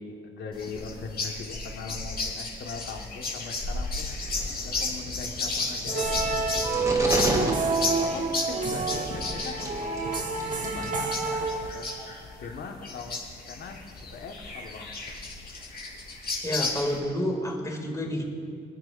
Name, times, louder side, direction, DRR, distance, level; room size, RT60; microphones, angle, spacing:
voice 1, 0.0-9.9 10.6-12.1 12.4-13.8 14.1-14.9, left 4 dB, 65° left, 3 dB, 1.5 m, -40 dB
sound 1, 0.5-17.0, left 3 dB, 50° left, 3.7 m, -34 dB
sound 2, 4.1-10.9, right 1 dB, 15° right, 2.9 m, -35 dB
sound 3, 5.9-12.1, right 4 dB, 40° right, 1.1 m, -29 dB
voice 2, 16.4-18.2, equal, 15° left, 1 dB, 2.4 m, -29 dB
25.5 x 9.9 x 2.6 m, 2.3 s
cardioid pair, 90°, 20 cm